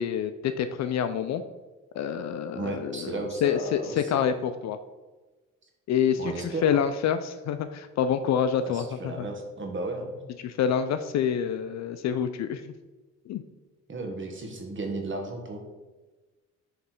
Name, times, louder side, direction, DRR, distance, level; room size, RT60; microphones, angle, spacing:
voice 1, 0.0-1.4 1.9-4.8 5.9-9.3 10.4-12.7 13.3-13.4, left 8 dB, 60° left, 10 dB, 0.4 m, -27 dB
voice 2, 2.5-4.2 6.2-6.8 8.6-10.2 13.9-15.6, right 2 dB, 40° right, 2 dB, 1.2 m, -34 dB
7.3 x 3.3 x 4.4 m, 1.2 s
cardioid pair, 90°, 30 cm